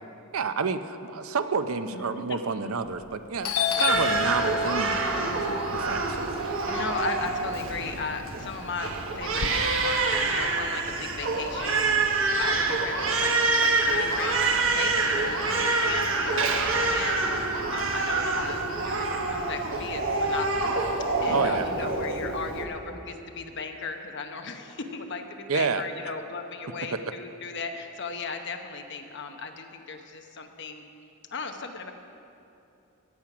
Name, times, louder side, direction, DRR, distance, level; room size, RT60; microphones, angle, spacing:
voice 1, 0.3-6.2 21.3-22.0 25.5-25.8, right 5 dB, 80° right, 10 dB, 0.6 m, -29 dB
voice 2, 1.9-2.4 3.7-3.9 6.7-30.8 31.3-31.9, left 4 dB, 55° left, 5 dB, 1.0 m, -37 dB
Doorbell, 2.9-3.1 3.4-7.6 7.9-9.5, left 5 dB, 90° left, 0.7 m, -30 dB
Crying sobbing, 3.9-22.7, right 3 dB, 65° right, 1.1 m, -26 dB
17.0 x 7.4 x 6.0 m, 2.8 s
head